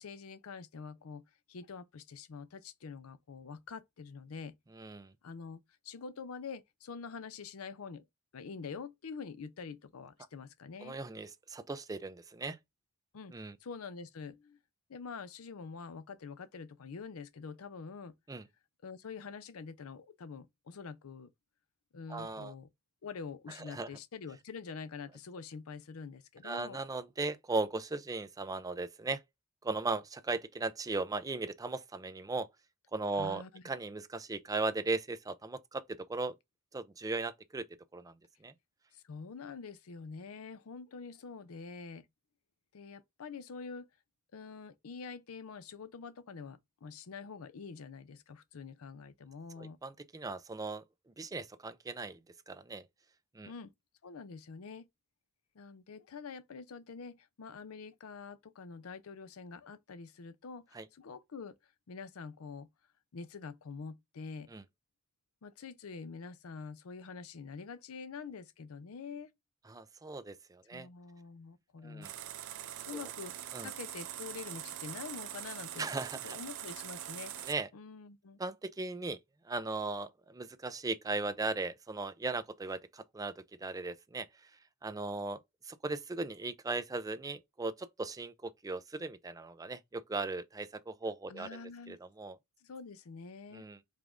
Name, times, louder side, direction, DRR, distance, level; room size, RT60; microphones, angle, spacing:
voice 1, 0.0-4.5 5.2-8.1 8.3-11.0 13.1-13.3 13.6-14.6 14.9-18.1 18.8-21.3 21.9-22.7 23.0-26.8 33.1-33.6 38.9-42.1 42.7-43.9 44.3-49.8 53.4-53.7 54.0-54.9 55.5-61.6 61.9-62.7 63.1-64.5 65.4-69.3 70.7-72.1 72.9-75.9 76.2-77.3 77.7-78.4 91.3-92.0 92.6-93.7, left 5 dB, 85° left, 0.5 m, -46 dB
voice 2, 4.8-5.1 10.8-12.6 13.3-13.6 18.3-18.4 22.1-22.5 23.6-23.9 26.4-29.2 29.6-32.5 32.9-36.4 36.7-37.7 37.9-38.1 38.4-38.5 49.6-50.8 51.2-52.2 52.5-52.9 53.3-53.5 60.7-60.9 64.5-64.6 69.7-70.9 71.8-72.1 73.5-73.7 75.8-76.4 77.4-77.7 78.4-79.2 79.4-83.3 83.6-84.3 84.8-85.4 85.7-91.6 91.9-92.4 93.5-93.8, right 3 dB, 15° right, 0.4 m, -37 dB
sound 1, 72.0-77.5, right 11 dB, 80° right, 0.5 m, -43 dB
4.9 x 2.5 x 3.7 m
head